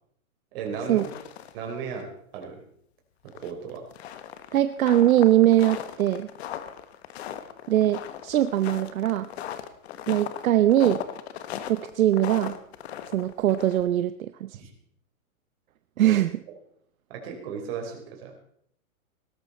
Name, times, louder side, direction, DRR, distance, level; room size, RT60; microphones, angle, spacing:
voice 1, 0.5-1.1 1.5-2.1 2.3-2.6 3.2-3.8 14.5-14.7 16.0-16.2 17.1-18.4, right 6 dB, 45° right, 2 dB, 4.3 m, -35 dB
sound 1, 0.6-1.6 1.9-2.0 2.4-2.5 3.3-14.0, left 10 dB, 50° left, 1.3 m, -38 dB
voice 2, 4.5-6.3 7.7-9.3 10.1-11.0 11.7-12.6 13.1-14.6 16.0-16.3, right 12 dB, 75° right, 12 dB, 0.8 m, -22 dB
18.0 x 13.0 x 4.2 m, 0.67 s
hypercardioid pair, 150°, 42 cm